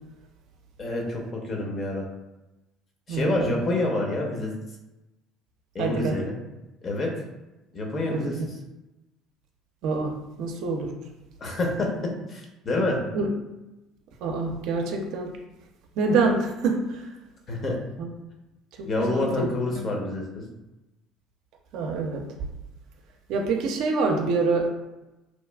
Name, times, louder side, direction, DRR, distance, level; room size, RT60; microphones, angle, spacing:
voice 1, 0.8-2.1 3.1-4.5 5.7-6.3 6.8-7.1 7.7-8.4 11.4-13.0 17.5-17.8 18.8-20.4, left 2 dB, 40° left, 0 dB, 0.6 m, -27 dB
voice 2, 3.1-3.6 5.8-6.2 8.1-8.3 9.8-10.9 13.1-13.3 14.2-15.3 16.0-17.0 18.0-18.1 18.8-19.5 19.8-19.9 21.7-22.3 23.3-24.7, right 3 dB, 70° right, 2 dB, 0.4 m, -26 dB
2.9 x 2.3 x 2.2 m, 1.0 s
supercardioid pair, 100°, 0 cm